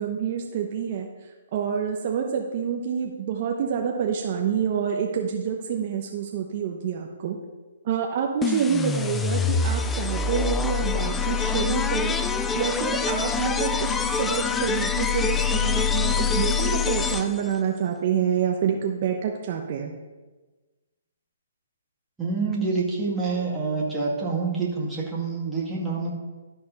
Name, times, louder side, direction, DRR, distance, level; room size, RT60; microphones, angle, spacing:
voice 1, 0.0-7.4 7.8-12.2 12.5-20.0, right 7 dB, 45° right, 2 dB, 1.0 m, -27 dB
sound 1, 8.4-17.6, left 6 dB, 10° left, 0.4 m, -25 dB
voice 2, 22.2-26.1, right 4 dB, 5° right, -6 dB, 2.1 m, -27 dB
12.5 x 4.2 x 5.5 m, 1.2 s
hypercardioid pair, 150°, 0 cm